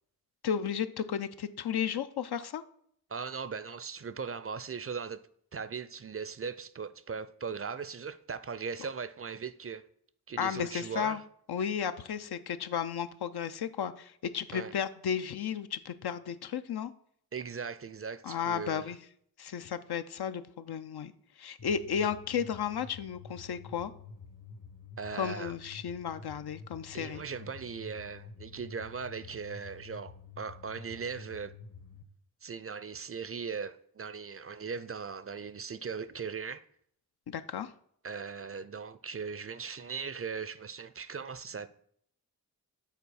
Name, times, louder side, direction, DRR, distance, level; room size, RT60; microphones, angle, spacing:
voice 1, 0.4-2.6 10.4-11.2 11.5-16.9 18.2-19.0 19.4-21.1 21.4-23.9 25.1-27.2 37.3-37.7, left 8 dB, 80° left, 0.5 m, -33 dB
voice 2, 3.1-5.2 5.5-9.8 10.3-11.2 14.5-14.7 17.3-18.9 25.0-25.5 26.9-31.5 32.4-36.6 38.0-41.7, right 5 dB, 35° right, 0.4 m, -39 dB
sound 1, 21.6-32.0, left 5 dB, 55° left, 1.0 m, -49 dB
5.8 x 4.1 x 6.2 m
cardioid pair, 45°, 38 cm